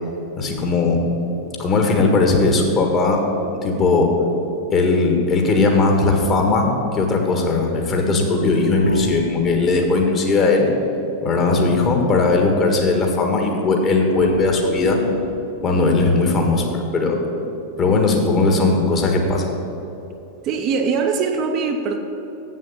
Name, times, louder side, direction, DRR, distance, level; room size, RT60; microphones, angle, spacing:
voice 1, 0.4-1.1 1.6-3.2 3.6-4.1 4.7-10.7 11.2-15.0 15.6-17.2 17.8-19.5, left 3 dB, 30° left, 2 dB, 1.5 m, -18 dB
sound 1, 6.1-6.6 8.8-9.7 11.4-12.6 14.1-15.5, left 1 dB, 85° left, 0.4 m, -27 dB
voice 2, 20.4-22.0, right 5 dB, 35° right, 5 dB, 0.7 m, -21 dB
7.8 x 7.4 x 7.1 m, 2.9 s
figure-of-eight pair, 90°, 0 cm